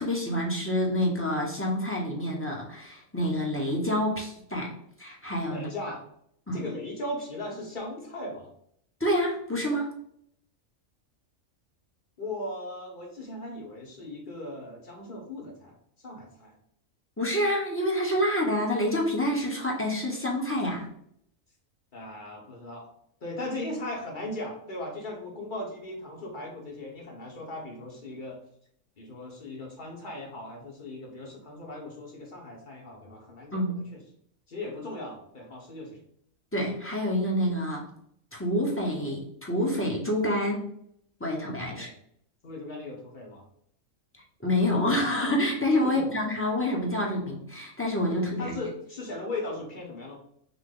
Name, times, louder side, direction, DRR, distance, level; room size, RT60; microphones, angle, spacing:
voice 1, 0.0-4.7 5.0-5.7 6.5-6.6 9.0-9.9 17.2-20.9 33.5-33.8 36.5-37.9 38.3-40.6 41.2-41.9 44.4-48.6, left 1 dB, 10° left, -2 dB, 0.8 m, -27 dB
voice 2, 5.5-6.0 6.5-8.5 12.2-16.5 21.9-22.9 23.2-28.4 29.0-33.6 33.9-34.0 34.5-36.0 41.7-41.9 42.4-43.4 45.8-46.2 48.1-50.2, left 1 dB, 40° left, -1 dB, 1.2 m, -38 dB
5.8 x 2.1 x 3.7 m, 0.70 s
omnidirectional pair, 1.4 m